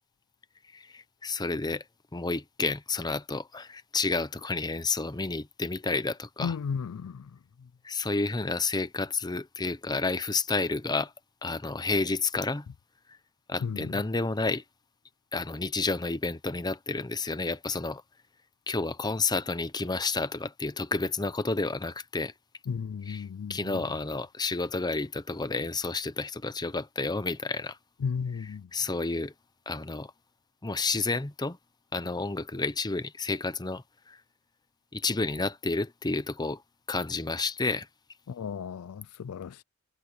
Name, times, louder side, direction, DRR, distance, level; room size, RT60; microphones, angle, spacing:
voice 1, 0.7-1.8 2.1-6.6 7.8-11.1 11.4-12.7 13.5-14.6 15.3-18.0 18.7-22.3 23.1-23.2 23.5-27.8 28.4-29.3 29.7-30.1 30.6-31.6 31.9-34.2 34.9-36.6 36.9-37.9, left 3 dB, 20° left, 0.8 m, -30 dB
voice 2, 6.4-7.3 13.6-13.9 22.7-23.8 28.0-28.7 38.3-39.6, left 6 dB, 75° left, 0.4 m, -34 dB
head